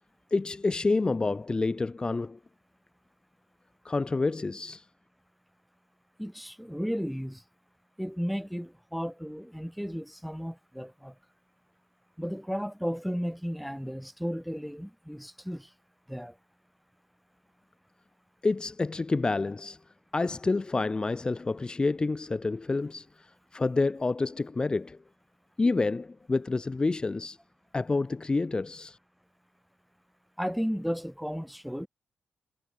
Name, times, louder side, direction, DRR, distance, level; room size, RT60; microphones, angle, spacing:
voice 1, 0.3-2.4 3.8-4.8 18.4-19.8 20.1-25.0 25.6-27.4 27.7-29.0, left 3 dB, 20° left, 1.6 m, -28 dB
voice 2, 6.2-7.4 8.0-11.1 12.2-15.7 16.1-16.3 30.4-31.9, equal, ahead, 2.6 m, -34 dB
wide cardioid pair, 130°, 4 cm